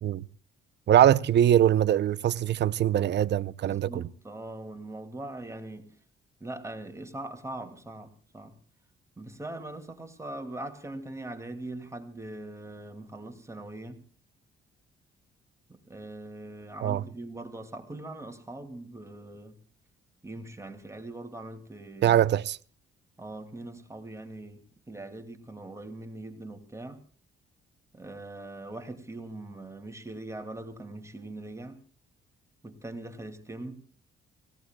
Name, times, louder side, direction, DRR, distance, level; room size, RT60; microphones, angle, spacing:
voice 1, 0.9-4.1 16.8-17.0 22.0-22.6, right 11 dB, 60° right, 0.7 m, -22 dB
voice 2, 3.6-5.9 6.4-8.5 9.2-14.0 15.7-19.6 20.2-22.2 23.2-27.0 27.9-31.8 32.6-33.8, right 2 dB, 15° right, 2.5 m, -41 dB
29.0 x 17.0 x 2.3 m
cardioid pair, 90°, 20 cm